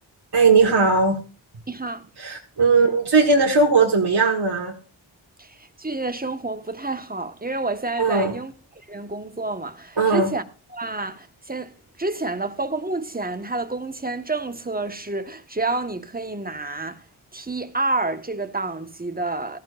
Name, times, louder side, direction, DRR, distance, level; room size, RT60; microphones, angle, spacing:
voice 1, 0.3-1.2 2.2-4.7 8.0-8.4 10.0-10.3, right 4 dB, 55° right, 1.8 m, -18 dB
voice 2, 1.7-2.0 5.4-10.4 10.7-17.0 17.3-19.6, right 2 dB, 20° right, 1.4 m, -29 dB
17.0 x 14.0 x 2.5 m
cardioid pair, 40°, 47 cm